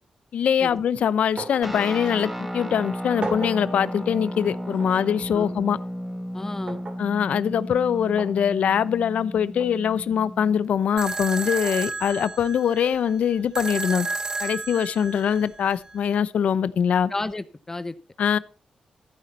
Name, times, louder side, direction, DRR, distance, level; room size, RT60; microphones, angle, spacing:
voice 1, 0.3-5.8 7.0-14.1 14.4-17.1 18.2-18.4, left 8 dB, 75° left, 0.7 m, -23 dB
sound 1, 1.4-1.7 2.1-2.2 3.2-3.6 4.8-4.9 6.7-7.0 8.2-8.4 9.6-9.7, right 3 dB, 50° right, 3.0 m, -34 dB
Guitar, 1.6-10.7, equal, 5° right, 1.8 m, -34 dB
voice 2, 6.3-6.8 11.6-11.7 17.1-18.0, left 2 dB, 20° left, 0.8 m, -32 dB
sound 2, 11.0-16.0, right 3 dB, 30° right, 0.9 m, -32 dB
14.5 x 9.4 x 4.2 m
wide cardioid pair, 110°, 2 cm